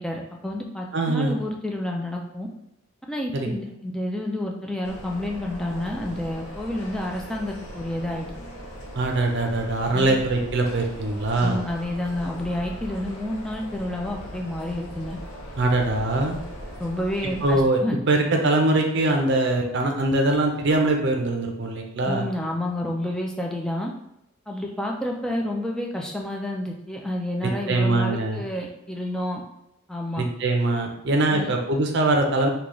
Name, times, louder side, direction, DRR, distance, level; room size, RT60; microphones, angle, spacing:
voice 1, 0.0-2.5 3.1-8.3 9.9-10.2 11.4-15.2 16.8-18.0 22.0-23.9 24.5-29.4 29.9-30.2 31.3-31.5, left 1 dB, 5° left, 0 dB, 0.3 m, -29 dB
voice 2, 0.9-1.4 3.3-3.5 8.9-11.6 15.6-16.4 17.4-17.8 18.1-22.2 27.4-28.4 30.2-32.5, right 2 dB, 55° right, 2 dB, 0.5 m, -22 dB
sound 1, 4.8-17.7, equal, 85° left, 0.8 m, -39 dB
3.1 x 2.3 x 3.7 m, 0.82 s
head